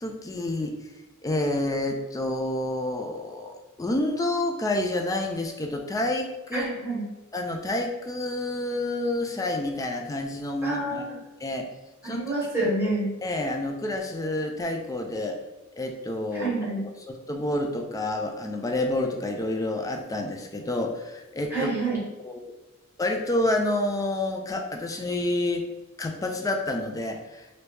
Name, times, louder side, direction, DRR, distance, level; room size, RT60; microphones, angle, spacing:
voice 1, 0.0-0.8 1.2-6.7 7.3-11.1 11.4-11.7 12.0-12.5 13.2-15.4 15.8-16.5 17.1-21.7 22.2-22.5 23.0-25.7 26.0-27.6, left 1 dB, 15° left, 4 dB, 0.4 m, -29 dB
voice 2, 6.5-7.0 10.6-11.0 12.0-13.1 16.3-16.8 21.5-22.0, right 2 dB, 10° right, -6 dB, 1.2 m, -27 dB
3.0 x 2.6 x 3.3 m, 1.1 s
head